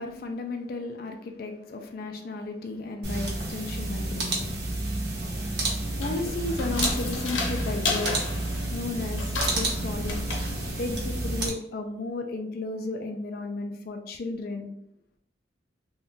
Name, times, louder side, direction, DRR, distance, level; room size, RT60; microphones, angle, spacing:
voice 1, 0.0-10.2 10.8-14.7, left 3 dB, 50° left, 4 dB, 0.4 m, -34 dB
sound 1, 3.0-11.5, right 2 dB, 55° right, 0.9 m, -30 dB
sound 2, 5.8-11.4, left 3 dB, 80° left, 0.7 m, -34 dB
2.5 x 2.2 x 3.7 m, 0.72 s
head